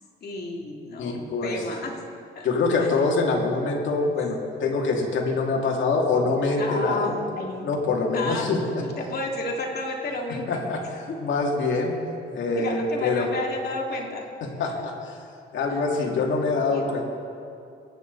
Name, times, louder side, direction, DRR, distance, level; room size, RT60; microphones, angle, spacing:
voice 1, 0.2-2.0 2.3-3.1 6.6-7.7 8.1-10.6 11.1-11.2 12.6-14.2 14.7-14.9 15.7-16.3 16.7-16.8, left 2 dB, 55° left, -1 dB, 2.7 m, -32 dB
voice 2, 1.0-1.6 2.4-7.2 7.6-8.8 10.5-10.8 11.2-12.0 12.3-13.3 14.4-15.2 15.5-17.0, left 3 dB, 70° left, -1 dB, 2.6 m, -24 dB
23.0 x 9.9 x 4.1 m, 2.5 s
cardioid pair, 90°, 20 cm